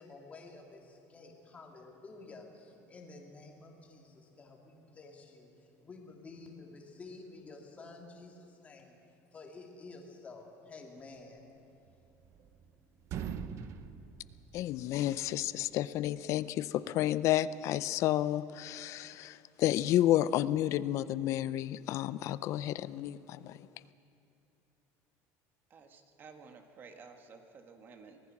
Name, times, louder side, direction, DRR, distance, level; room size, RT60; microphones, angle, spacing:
voice 1, 0.0-14.5, left 3 dB, 20° left, 1 dB, 2.7 m, -52 dB
sound 1, 11.9-12.7 13.0-15.1, right 8 dB, 45° right, 0.9 m, -42 dB
voice 2, 14.5-23.6, left 13 dB, 50° left, 16 dB, 0.5 m, -31 dB
voice 3, 25.7-28.2, right 5 dB, 30° right, 6 dB, 1.6 m, -53 dB
24.5 x 18.5 x 6.0 m, 2.8 s
cardioid pair, 155°, 7 cm